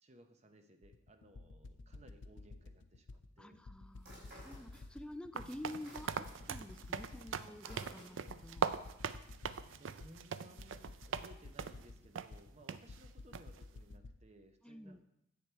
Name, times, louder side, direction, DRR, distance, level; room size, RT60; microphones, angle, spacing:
voice 1, 0.0-3.6 9.4-15.0, right 1 dB, 35° right, 6 dB, 0.8 m, -61 dB
sound 1, 0.8-14.1, left 2 dB, 75° left, 0.6 m, -53 dB
voice 2, 3.4-8.7 14.6-15.0, left 1 dB, 5° left, 10 dB, 0.3 m, -49 dB
sound 2, 4.0-5.2 5.5-8.5, right 1 dB, 55° right, 4.4 m, -57 dB
sound 3, 5.3-11.3 11.6-11.8 12.1-12.3 12.7-12.8 13.3-13.6, right 6 dB, 85° right, 0.4 m, -40 dB
10.0 x 7.7 x 4.5 m, 0.80 s
head